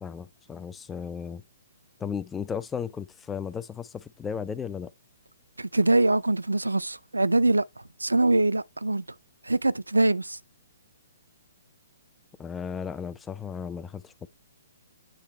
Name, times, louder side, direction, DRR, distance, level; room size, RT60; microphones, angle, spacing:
voice 1, 0.0-1.4 2.0-4.9 12.4-14.3, left 6 dB, 10° left, 0.4 m, -35 dB
voice 2, 5.6-7.6 8.0-9.0 9.4-10.4, right 2 dB, 80° right, 0.4 m, -23 dB
9.2 x 3.4 x 3.1 m
figure-of-eight pair, 125°, 0 cm